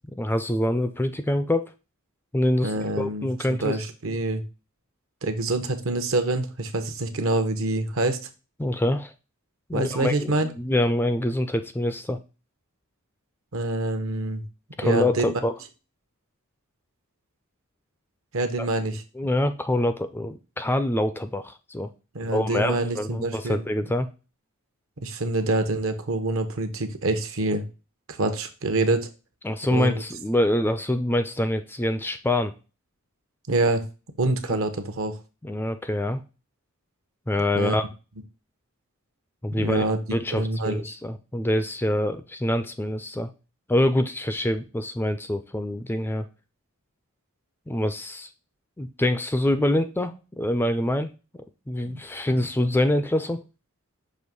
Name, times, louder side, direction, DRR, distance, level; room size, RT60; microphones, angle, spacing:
voice 1, 0.2-1.7 2.3-3.8 8.6-9.1 9.7-12.2 14.8-15.5 18.6-18.7 19.2-21.9 22.3-24.1 29.4-32.5 34.5-34.6 35.4-36.2 37.3-37.9 39.4-39.8 40.1-43.3 43.7-46.3 47.7-48.3 48.8-53.4, left 1 dB, 10° left, 9 dB, 0.4 m, -25 dB
voice 2, 2.6-4.4 5.2-8.2 9.7-10.5 13.5-14.4 14.8-15.3 18.3-19.0 22.1-23.6 25.0-27.6 28.1-29.1 29.7-29.9 33.5-33.8 34.2-35.2 37.5-37.7 39.5-40.0 40.3-40.8 51.8-52.0 52.3-52.5, right 2 dB, 65° right, 8 dB, 0.9 m, -26 dB
6.3 x 2.9 x 5.3 m, 0.31 s
head